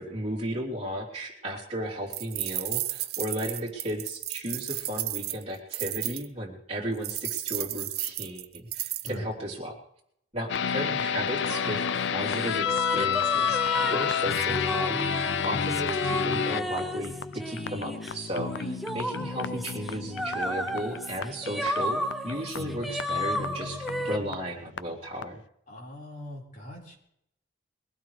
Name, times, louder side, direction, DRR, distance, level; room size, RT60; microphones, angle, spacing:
voice 1, 0.0-9.8 10.3-15.0 15.4-25.4, equal, 35° right, -4 dB, 3.4 m, -35 dB
sound 1, 2.1-6.3 7.0-9.1, right 15 dB, 55° right, 0.6 m, -33 dB
sound 2, 10.5-24.8 25.2-25.3, left 7 dB, 70° left, 0.5 m, -31 dB
sound 3, 11.5-24.2, equal, ahead, 0.7 m, -33 dB
voice 2, 25.7-27.0, equal, 45° left, -2 dB, 4.8 m, -41 dB
22.5 x 16.0 x 3.3 m, 0.75 s
head